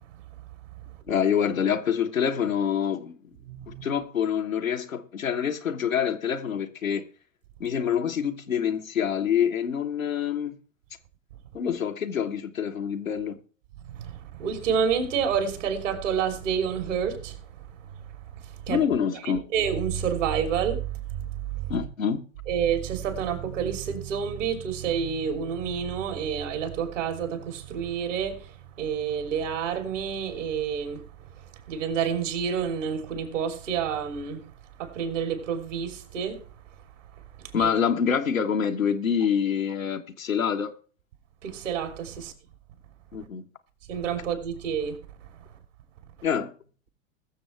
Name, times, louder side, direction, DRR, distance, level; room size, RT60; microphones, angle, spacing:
voice 1, 1.1-3.1 3.7-7.1 7.6-10.6 11.5-13.4 18.7-19.5 21.7-22.3 37.5-40.7 43.1-43.4 46.2-46.5, left 8 dB, 85° left, 1.2 m, -26 dB
voice 2, 3.5-3.8 13.9-17.5 18.4-18.8 19.2-21.8 22.5-31.3 31.7-34.4 34.8-36.4 37.6-37.7 41.4-42.3 43.9-45.0, right 7 dB, 65° right, 3.1 m, -29 dB
21.0 x 7.0 x 3.2 m
figure-of-eight pair, 95°, 39 cm